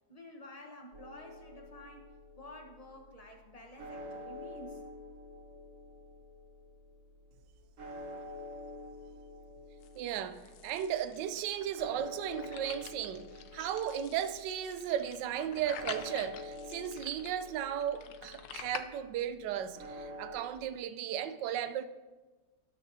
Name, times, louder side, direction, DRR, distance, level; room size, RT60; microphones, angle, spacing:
voice 1, 0.1-2.1 2.4-4.8, left 1 dB, 25° left, 0.9 m, -50 dB
sound 1, 0.9-20.4, left 1 dB, 50° right, 1.4 m, -48 dB
sound 2, 9.8-18.8, left 9 dB, 70° left, 1.1 m, -48 dB
voice 2, 10.0-13.3 13.5-19.8 20.2-21.8, right 10 dB, 80° right, 1.2 m, -35 dB
18.0 x 6.3 x 2.7 m
omnidirectional pair, 1.9 m